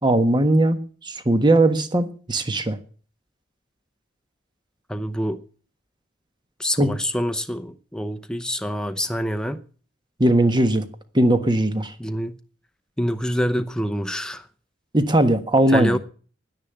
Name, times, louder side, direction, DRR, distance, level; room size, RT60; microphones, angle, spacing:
voice 1, 0.0-2.8 6.8-6.9 10.2-10.8 11.1-11.9 14.9-16.0, right 1 dB, 25° right, 1.4 m, -19 dB
voice 2, 4.9-5.4 6.6-9.6 12.0-12.4 13.0-14.4 15.7-16.0, equal, 5° left, 0.7 m, -26 dB
11.0 x 10.5 x 8.8 m
head